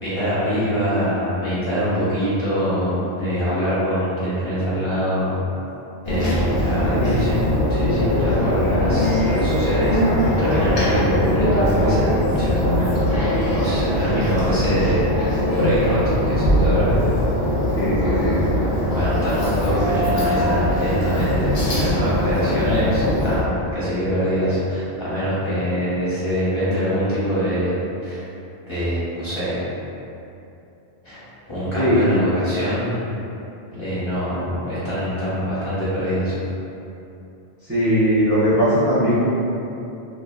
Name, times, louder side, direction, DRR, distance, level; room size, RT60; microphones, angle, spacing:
voice 1, 0.0-5.4 6.0-7.4 7.7-16.9 18.9-27.7 28.0-28.2 28.7-29.6 31.0-31.2 31.5-33.0 33.7-36.3, equal, 30° left, -13 dB, 0.8 m, -24 dB
sound 1, 6.0-23.4, left 1 dB, 65° left, 0.8 m, -21 dB
voice 2, 17.7-18.4 31.8-32.1 37.7-39.2, equal, 20° right, -14 dB, 0.4 m, -19 dB
2.6 x 2.5 x 2.2 m, 2.8 s
omnidirectional pair, 1.1 m